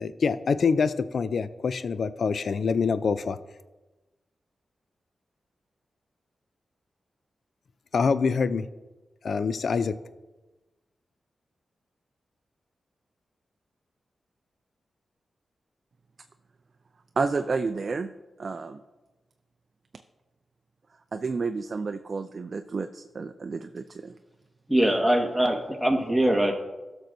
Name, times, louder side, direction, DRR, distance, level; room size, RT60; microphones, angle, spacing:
voice 1, 0.0-3.4 7.9-8.6 9.2-9.9, left 5 dB, 70° left, 14 dB, 0.4 m, -25 dB
voice 2, 17.2-18.1 18.4-18.8 21.1-24.1, right 4 dB, 55° right, 8 dB, 0.4 m, -30 dB
voice 3, 24.7-26.5, right 1 dB, ahead, 2 dB, 1.6 m, -22 dB
13.5 x 6.2 x 2.7 m, 1.1 s
cardioid pair, 55°, 0 cm